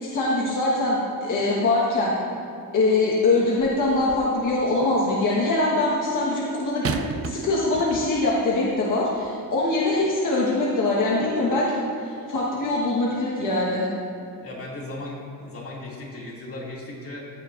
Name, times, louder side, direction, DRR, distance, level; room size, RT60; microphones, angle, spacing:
voice 1, 0.0-2.1 2.7-13.9, left 2 dB, 60° left, -5 dB, 1.4 m, -23 dB
sound 1, 3.6-4.4 6.8-8.4 9.2-9.3, right 6 dB, 40° right, 0.4 m, -34 dB
voice 2, 14.4-17.3, left 2 dB, 40° left, -4 dB, 2.5 m, -36 dB
16.0 x 9.5 x 2.6 m, 2.5 s
wide cardioid pair, 145°, 36 cm